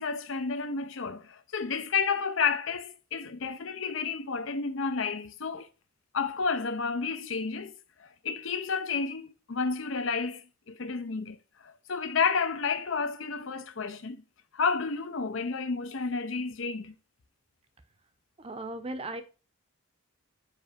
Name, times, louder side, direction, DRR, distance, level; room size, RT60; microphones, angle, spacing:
voice 1, 0.0-5.7 6.1-11.4 11.6-14.2 14.5-16.9, left 5 dB, 65° left, 0.6 m, -31 dB
voice 2, 18.4-19.2, right 2 dB, 30° right, 0.7 m, -37 dB
5.0 x 4.6 x 5.0 m
head